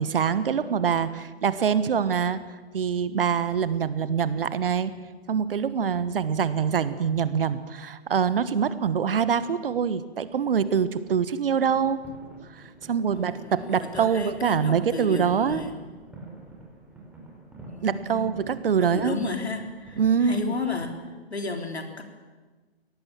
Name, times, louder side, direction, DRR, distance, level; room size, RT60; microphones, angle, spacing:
voice 1, 0.0-2.4 2.7-4.9 5.3-12.0 12.5-15.6 17.8-19.2 20.0-20.5, right 7 dB, 60° right, 15 dB, 1.4 m, -24 dB
sound 1, 11.7-20.9, right 2 dB, 5° right, 5.4 m, -47 dB
voice 2, 13.1-15.7 17.6-18.3 18.8-21.0 21.3-22.0, left 4 dB, 75° left, 5 dB, 3.8 m, -33 dB
23.0 x 18.0 x 7.5 m, 1.3 s
figure-of-eight pair, 120°, 32 cm